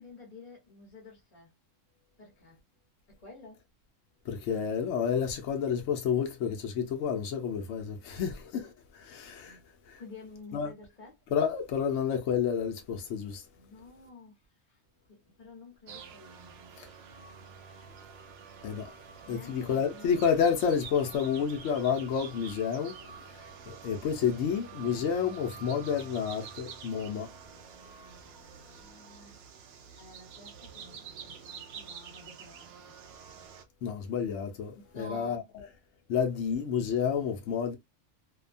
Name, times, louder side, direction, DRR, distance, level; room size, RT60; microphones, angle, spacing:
voice 1, 0.0-1.5 2.2-2.6 3.1-3.6 9.4-9.6 9.9-11.1 13.5-14.4 14.7-14.8 15.1-16.8 19.2-20.2 21.0-21.2 23.8-24.1 28.4-29.4 29.7-32.9 34.8-35.5, left 3 dB, 35° left, 1.0 m, -51 dB
voice 2, 4.3-9.6 9.9-10.0 10.5-10.7 11.3-13.5 16.8-16.9 18.6-18.9 19.3-27.3 33.8-35.4 36.1-37.8, left 7 dB, 70° left, 0.9 m, -30 dB
sound 1, 15.9-33.6, right 6 dB, 65° right, 0.7 m, -48 dB
2.7 x 2.2 x 2.4 m
omnidirectional pair, 1.3 m